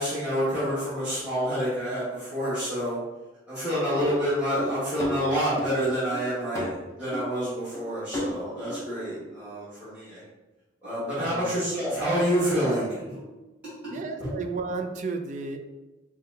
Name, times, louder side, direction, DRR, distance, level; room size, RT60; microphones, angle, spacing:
voice 1, 0.0-3.0 3.5-10.2 10.8-13.2 13.8-14.3, equal, 10° right, -15 dB, 1.4 m, -28 dB
sound 1, 4.0-5.8 6.1-6.8 7.1-7.3 7.7-7.8 8.1-8.3 8.7-8.8, left 1 dB, 15° left, 0.6 m, -32 dB
voice 2, 11.2-11.5 13.9-15.6, right 4 dB, 40° right, 5 dB, 0.3 m, -33 dB
5.3 x 2.2 x 2.7 m, 1.1 s
head